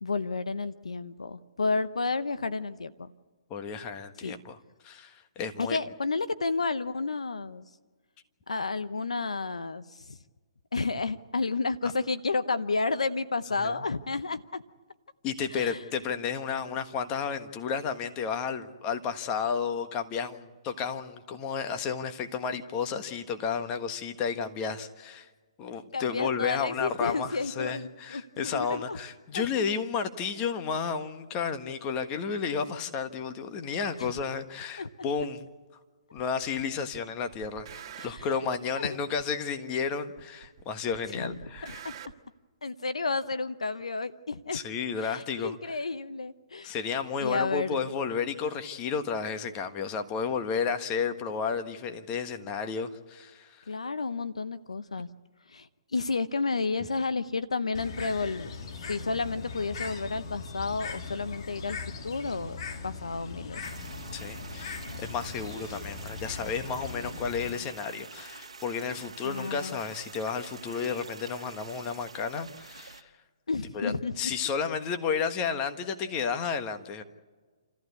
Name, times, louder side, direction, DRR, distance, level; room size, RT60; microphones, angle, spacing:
voice 1, 0.0-3.1 4.2-4.4 5.6-7.6 8.5-10.2 10.7-14.6 15.5-15.8 25.9-29.0 29.3-29.5 34.0-34.1 34.8-34.9 38.0-38.2 38.7-39.0 41.1-41.4 41.7-41.9 42.6-44.6 45.0-46.7 47.2-47.8 53.7-55.1 55.5-58.5 58.8-61.8 62.0-63.6 69.2-69.8 73.5-74.3, left 4 dB, 85° left, 14 dB, 0.8 m, -31 dB
voice 2, 3.5-4.6 4.8-5.8 13.6-13.8 15.2-25.3 25.6-35.5 36.1-41.8 44.5-45.8 46.6-53.7 64.1-73.1 73.7-77.0, left 6 dB, 25° left, 8 dB, 1.5 m, -32 dB
sound 1, 34.2-34.3 35.2-35.3 36.2-36.6 36.9-38.4 39.2-39.3 40.2-40.6 40.9-42.1, right 8 dB, 45° right, 1.7 m, -46 dB
Bird, 57.7-67.5, left 4 dB, 55° left, 2.0 m, -40 dB
sound 2, 63.6-73.0, right 4 dB, 80° right, 1.6 m, -47 dB
28.5 x 14.5 x 8.3 m, 1.4 s
hypercardioid pair, 135°, 3 cm